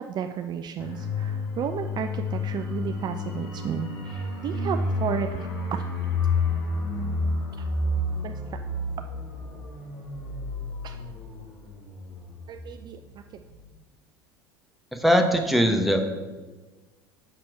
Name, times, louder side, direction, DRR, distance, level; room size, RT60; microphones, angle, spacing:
voice 1, 0.0-5.8 8.2-8.6 10.8-11.0 12.5-13.4, right 8 dB, 35° right, 7 dB, 0.4 m, -33 dB
sound 1, 0.8-13.1 13.4-13.6, left 3 dB, 65° left, 1.8 m, -30 dB
voice 2, 14.9-16.0, equal, ahead, 4 dB, 0.9 m, -21 dB
6.6 x 6.0 x 4.5 m, 1.3 s
figure-of-eight pair, 75°, 13 cm